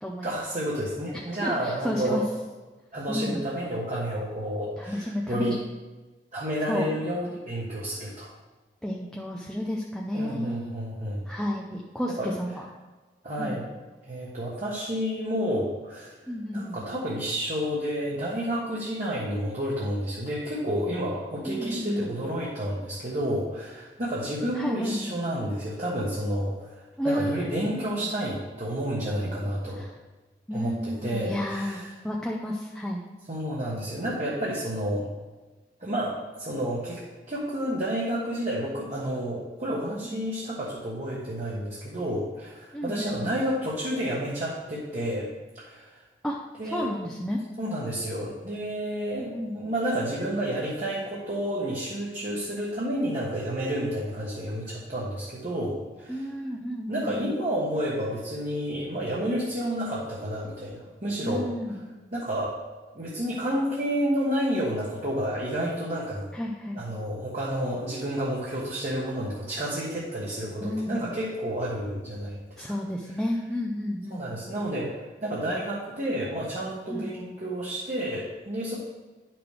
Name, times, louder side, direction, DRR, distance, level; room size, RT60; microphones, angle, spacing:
voice 1, 0.2-2.2 2.9-5.6 6.3-8.3 10.1-11.2 12.1-12.3 13.2-13.6 14.0-16.1 16.5-26.7 27.0-29.8 30.5-31.9 33.3-35.1 35.8-37.0 37.3-45.3 45.5-46.0 46.6-46.9 47.6-56.3 56.9-61.5 62.1-62.6 62.9-66.2 66.7-72.6 74.1-78.7, equal, 40° right, -6 dB, 1.4 m, -30 dB
voice 2, 1.4-2.2 3.1-3.4 4.9-5.6 6.7-6.9 8.8-10.7 11.3-12.7 13.4-13.6 16.3-16.8 21.4-22.1 24.6-25.1 27.0-27.5 27.7-28.1 29.8-29.9 30.5-33.0 40.0-40.2 42.7-43.3 46.2-46.4 46.7-47.4 49.1-49.6 56.1-57.3 61.2-61.9 66.3-66.8 70.6-71.1 72.6-74.2 76.9-77.1, equal, 5° left, -3 dB, 0.6 m, -31 dB
10.5 x 6.0 x 3.4 m, 1.2 s
head